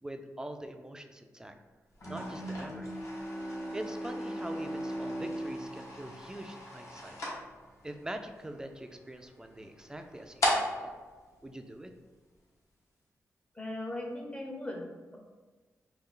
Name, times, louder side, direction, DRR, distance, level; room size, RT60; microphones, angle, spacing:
voice 1, 0.0-1.5 2.1-3.0 3.7-7.2 7.8-10.9 11.4-11.9, right 1 dB, 10° right, 6 dB, 0.3 m, -43 dB
sound 1, 1.9-12.3, left 1 dB, 60° left, 1.1 m, -39 dB
Bowed string instrument, 2.0-7.1, right 1 dB, 35° left, 1.3 m, -39 dB
voice 2, 13.6-15.2, left 1 dB, 20° left, 1 dB, 0.7 m, -39 dB
3.3 x 2.3 x 3.6 m, 1.3 s
cardioid pair, 80°, 6 cm